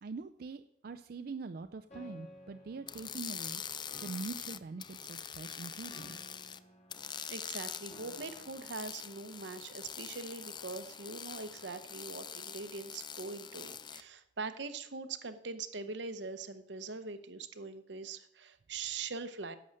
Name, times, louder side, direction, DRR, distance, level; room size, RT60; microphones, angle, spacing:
voice 1, 0.0-3.6 4.0-6.3, right 4 dB, 55° right, 9 dB, 0.4 m, -43 dB
Piano, 1.9-9.9, equal, 40° left, 2.5 m, -57 dB
sound 1, 2.9-6.6 6.9-14.0, left 8 dB, 25° left, 0.4 m, -44 dB
voice 2, 7.3-19.6, right 4 dB, 85° right, 10 dB, 0.9 m, -42 dB
11.0 x 7.7 x 6.5 m, 0.76 s
head